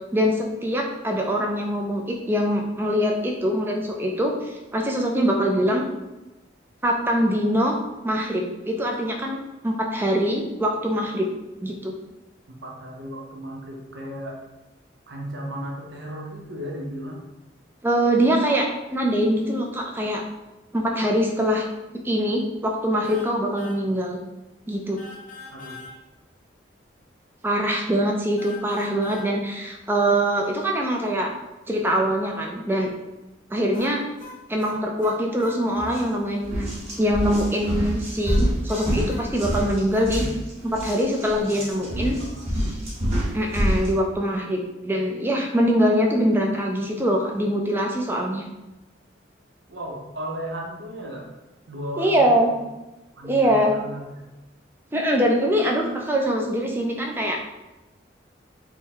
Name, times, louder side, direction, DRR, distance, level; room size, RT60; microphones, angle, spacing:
voice 1, 0.1-5.8 6.8-7.8 8.0-9.4 9.6-11.3 11.6-11.9 17.8-20.2 20.7-21.7 22.0-24.2 24.7-25.0 27.4-31.3 31.7-32.9 33.5-34.0 34.5-36.7 37.0-40.2 40.6-42.2 43.3-48.4 52.0-52.5 53.2-53.7 54.9-57.4, equal, 10° right, 1 dB, 0.4 m, -23 dB
voice 2, 12.5-14.4 15.1-17.2 25.5-25.8 40.1-40.3 41.5-42.7 49.7-51.3 51.7-52.5 53.2-54.3, equal, 75° right, -1 dB, 0.8 m, -35 dB
sound 1, 23.0-23.3 23.6-23.8 25.0-25.9 28.4-29.3 33.7-35.6 38.2-40.1, left 3 dB, 45° left, 0.7 m, -42 dB
sound 2, 35.8-36.0 36.4-43.9, equal, 35° right, 1.3 m, -27 dB
3.6 x 2.2 x 4.3 m, 1.0 s
head